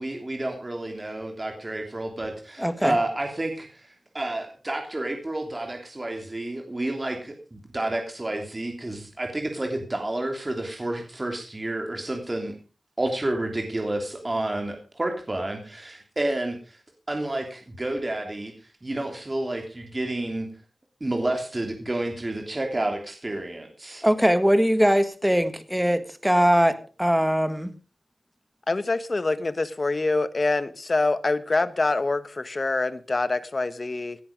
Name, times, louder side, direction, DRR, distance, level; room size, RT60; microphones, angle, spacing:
voice 1, 0.0-3.9 4.1-12.5 13.0-16.8 17.1-18.5 18.8-20.5 21.0-24.1, right 1 dB, 30° right, 3 dB, 3.1 m, -30 dB
voice 2, 2.6-3.0 24.0-27.7, equal, 5° right, 11 dB, 1.7 m, -21 dB
voice 3, 28.7-34.2, left 3 dB, 45° left, 14 dB, 1.3 m, -25 dB
17.0 x 10.5 x 5.2 m, 0.36 s
wide cardioid pair, 70°, 0 cm